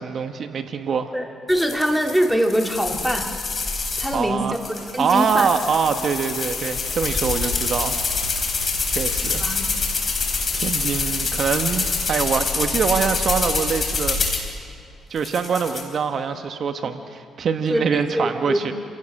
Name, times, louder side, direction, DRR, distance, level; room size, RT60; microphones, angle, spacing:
voice 1, 0.0-1.1 4.1-4.6 5.0-8.0 8.9-9.4 10.5-14.2 15.1-18.7, right 6 dB, 55° right, 7 dB, 1.1 m, -24 dB
voice 2, 1.1-3.3 4.0-4.6 4.9-5.5 9.2-9.7 17.7-18.7, equal, 5° right, 3 dB, 2.1 m, -23 dB
sound 1, 1.5-4.2 4.5-14.5 15.2-15.8, left 4 dB, 40° left, 4.3 m, -26 dB
sound 2, 5.1-12.1, left 7 dB, 65° left, 4.1 m, -34 dB
29.0 x 17.0 x 6.5 m, 2.3 s
cardioid pair, 90°, 0 cm